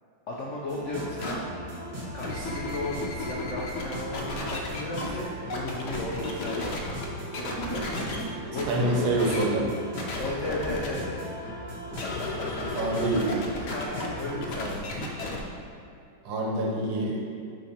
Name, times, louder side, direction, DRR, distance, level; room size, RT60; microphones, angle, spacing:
voice 1, 0.3-1.4 2.1-6.7 7.3-8.1 8.5-9.2 10.2-11.2 13.3-13.4 13.7-14.8, left 2 dB, 80° left, -3 dB, 0.6 m, -34 dB
sound 1, 0.7-14.8, equal, 35° right, 1.6 m, -39 dB
sound 2, 1.2-1.3 2.0-5.1 5.5-7.0 7.3-8.2 8.5-8.6 9.2-9.5 10.0-10.9 11.9-15.4, left 2 dB, 60° left, 1.3 m, -34 dB
voice 2, 8.7-9.7 12.7-13.4 16.3-17.3, right 2 dB, 70° right, -1 dB, 1.6 m, -26 dB
9.1 x 3.8 x 4.3 m, 2.3 s
omnidirectional pair, 2.2 m